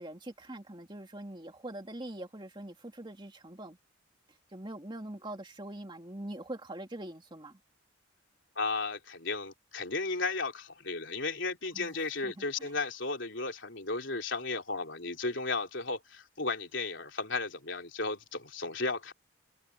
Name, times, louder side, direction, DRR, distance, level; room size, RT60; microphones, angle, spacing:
voice 1, 0.0-3.8 4.5-7.6 11.7-12.0 12.2-12.7, right 1 dB, 20° right, 2.6 m, -43 dB
voice 2, 8.6-19.1, left 3 dB, 60° left, 3.9 m, -34 dB
head